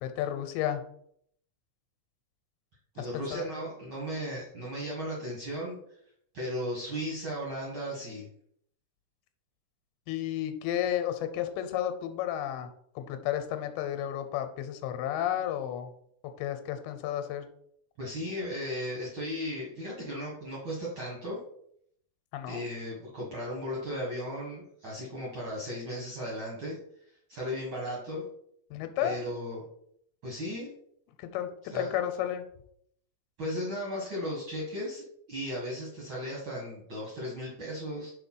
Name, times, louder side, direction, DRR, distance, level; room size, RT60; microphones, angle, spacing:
voice 1, 0.0-0.8 3.0-3.5 10.1-12.7 13.0-15.9 16.4-17.5 22.3-22.6 28.7-29.3 31.2-31.5 31.7-32.4, left 11 dB, 90° left, 8 dB, 2.7 m, -32 dB
voice 2, 2.9-5.8 6.3-8.3 18.0-21.4 22.5-26.8 27.3-28.2 29.0-29.7 30.2-30.7 31.7-31.9 33.4-38.1, equal, 50° right, -3 dB, 1.5 m, -36 dB
5.7 x 4.3 x 5.5 m, 0.67 s
omnidirectional pair, 4.4 m